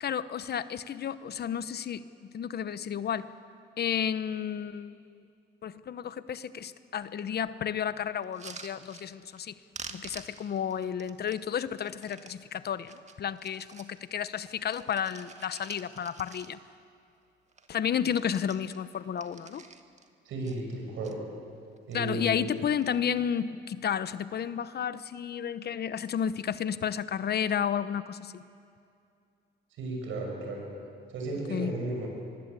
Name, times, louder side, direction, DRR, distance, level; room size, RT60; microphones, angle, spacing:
voice 1, 0.0-2.0 2.3-3.3 3.8-5.2 5.6-9.5 9.9-16.6 17.7-19.6 21.9-28.4 31.5-31.7, left 8 dB, 55° left, 14 dB, 0.9 m, -32 dB
sound 1, 8.2-9.5 9.7-12.4 12.8-14.0 14.3-16.8 17.2-17.3 17.5-17.8 18.0-20.1 20.4-21.1 21.7-22.2 22.4-23.0 23.8-24.1, right 4 dB, 35° right, 1.8 m, -48 dB
voice 2, 20.2-21.2 21.9-22.5 29.8-30.6 31.1-32.1, right 2 dB, 85° right, 1 dB, 6.2 m, -34 dB
24.0 x 23.0 x 8.3 m, 2.4 s
cardioid pair, 90°, 20 cm